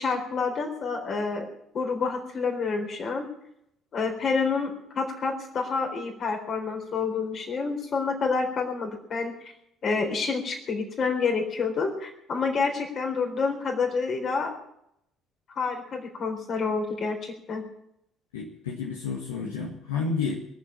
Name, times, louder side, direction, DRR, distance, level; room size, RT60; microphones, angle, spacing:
voice 1, 0.0-1.5 1.7-3.2 3.9-9.5 9.8-14.5 15.5-17.6, left 4 dB, 45° left, 3 dB, 4.0 m, -28 dB
voice 2, 18.3-20.4, left 5 dB, 75° left, -2 dB, 1.7 m, -30 dB
23.0 x 7.7 x 7.4 m, 0.78 s
figure-of-eight pair, 50°, 0 cm